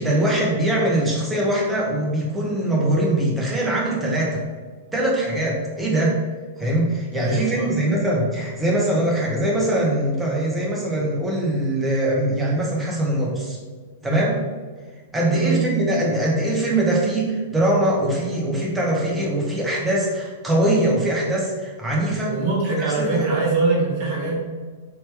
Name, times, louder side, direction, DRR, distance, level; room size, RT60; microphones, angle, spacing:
voice 1, 0.0-4.4 4.9-6.1 6.6-13.6 14.0-14.4 15.1-22.3 23.0-23.3, right 1 dB, 10° right, -3 dB, 0.8 m, -22 dB
voice 2, 7.1-7.8 15.1-15.6 22.2-24.4, right 3 dB, 45° right, -4 dB, 1.2 m, -23 dB
3.3 x 2.8 x 3.3 m, 1.5 s
figure-of-eight pair, 100°, 0 cm